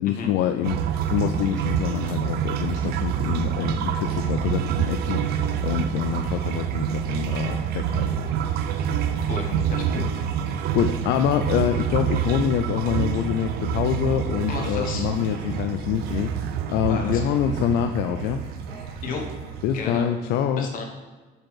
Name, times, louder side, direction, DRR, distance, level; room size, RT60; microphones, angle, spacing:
voice 1, 0.0-8.1 10.0-10.1 10.7-18.4 19.6-20.7, left 9 dB, 75° left, 7 dB, 0.4 m, -26 dB
sound 1, 0.6-19.8, right 8 dB, 70° right, 0.5 m, -27 dB
sound 2, 3.5-19.5, right 2 dB, 85° right, 2.0 m, -43 dB
voice 2, 9.2-10.1 14.5-15.1 16.9-17.4 19.0-19.3 19.7-20.1 20.6-20.8, left 4 dB, 55° left, 2 dB, 1.2 m, -32 dB
5.2 x 4.5 x 5.6 m, 1.3 s
cardioid pair, 150°, 17 cm